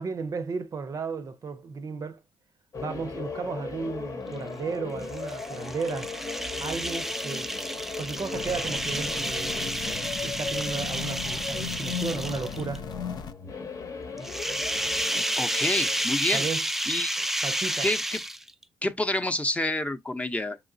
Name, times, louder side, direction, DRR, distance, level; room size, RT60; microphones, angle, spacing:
voice 1, 0.0-2.2 2.7-6.1 6.6-7.5 8.0-9.7 10.2-12.9 16.3-16.6 17.2-17.9, right 5 dB, 45° right, 0.6 m, -34 dB
sound 1, 2.7-16.0, left 5 dB, 45° left, 0.9 m, -37 dB
sound 2, 5.0-12.8 14.2-18.6, right 1 dB, 5° right, 0.4 m, -31 dB
sound 3, 8.3-13.3, left 6 dB, 60° left, 0.5 m, -39 dB
voice 2, 15.4-16.5 16.9-17.1 17.8-18.2 18.8-20.6, left 1 dB, 15° left, 0.7 m, -28 dB
4.6 x 3.0 x 2.6 m
supercardioid pair, 65°, 8 cm